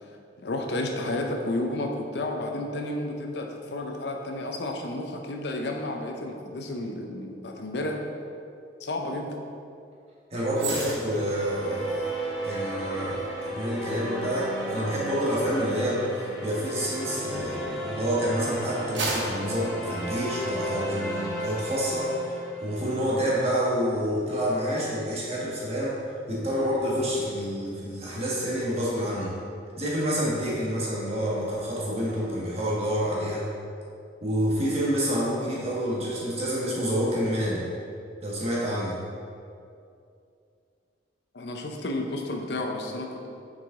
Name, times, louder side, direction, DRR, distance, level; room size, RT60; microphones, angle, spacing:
voice 1, 0.4-8.0 8.8-9.4 41.3-43.3, left 1 dB, 65° left, 3 dB, 0.7 m, -31 dB
voice 2, 10.3-12.1 12.4-26.0 26.3-29.4 29.8-33.5 34.2-37.6 38.2-39.0, equal, 35° right, -6 dB, 1.3 m, -28 dB
sound 1, 10.5-17.9 18.4-20.8 21.1-21.4, right 2 dB, 80° right, 1.2 m, -38 dB
sound 2, 10.8-23.2, right 1 dB, ahead, 1.1 m, -34 dB
6.5 x 4.9 x 3.7 m, 2.5 s
head